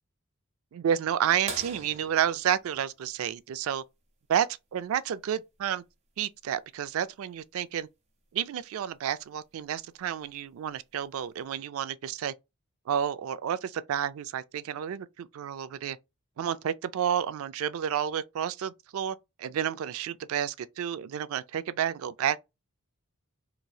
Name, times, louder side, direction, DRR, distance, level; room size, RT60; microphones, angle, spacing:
voice 1, 0.7-3.8 4.3-5.8 6.2-7.9 8.3-12.3 12.9-16.0 16.4-22.4, right 9 dB, 70° right, 0.3 m, -30 dB
sound 1, 1.5-3.9 5.9-6.0 8.2-8.3 10.0-10.3 11.1-11.2, right 4 dB, 30° right, 0.8 m, -42 dB
3.0 x 2.6 x 2.2 m
head